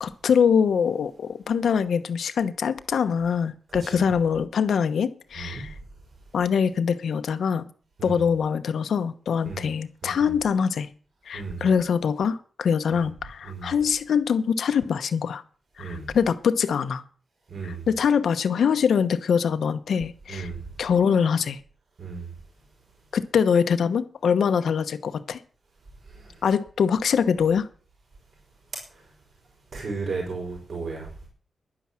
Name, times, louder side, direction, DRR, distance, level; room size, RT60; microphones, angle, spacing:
voice 1, 0.0-5.7 6.3-7.6 8.0-10.9 11.3-15.4 15.8-17.0 17.9-20.5 20.8-21.6 23.1-25.4 26.4-27.7, left 7 dB, 90° left, 1.0 m, -23 dB
voice 2, 10.0-10.3 11.3-11.7 12.9-13.0 13.4-13.7 15.8-16.1 17.5-17.9 20.3-20.7 22.0-22.3 26.0-26.4 28.9-29.1 29.7-31.1, right 4 dB, 60° right, 5.3 m, -35 dB
11.0 x 10.0 x 7.5 m
wide cardioid pair, 135°, 0 cm